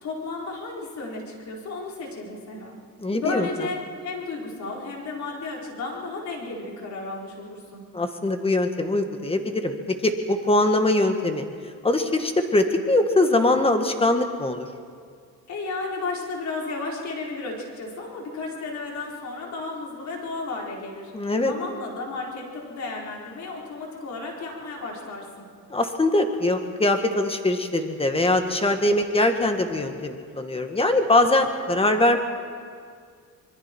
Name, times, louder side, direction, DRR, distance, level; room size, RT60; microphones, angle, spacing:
voice 1, 0.0-2.8 3.2-7.8 15.5-21.1 21.4-25.5, left 3 dB, 55° left, -1 dB, 4.5 m, -33 dB
voice 2, 3.0-3.5 7.9-9.7 10.0-11.5 11.8-14.7 21.1-21.5 25.7-32.2, left 2 dB, 15° left, 6 dB, 1.8 m, -22 dB
25.5 x 22.0 x 4.6 m, 2.1 s
cardioid pair, 110°, 33 cm